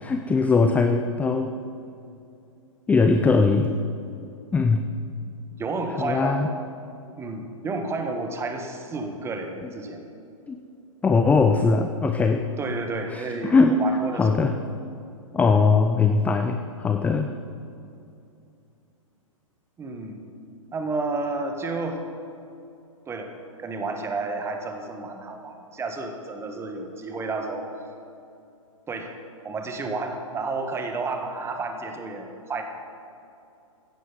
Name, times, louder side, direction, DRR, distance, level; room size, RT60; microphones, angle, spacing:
voice 1, 0.0-1.5 2.9-3.8 4.5-4.9 6.0-6.5 10.5-10.6 11.0-12.4 13.1-13.8 14.2-14.5 15.3-17.3, left 4 dB, 10° left, 6 dB, 0.4 m, -20 dB
voice 2, 5.6-6.5 7.2-10.0 12.6-14.4 19.8-20.2 20.7-22.0 23.1-23.3 23.6-27.7 28.9-29.1 29.4-32.6, right 3 dB, 15° right, 5 dB, 1.3 m, -31 dB
16.0 x 11.0 x 3.9 m, 2.6 s
hypercardioid pair, 120°, 18 cm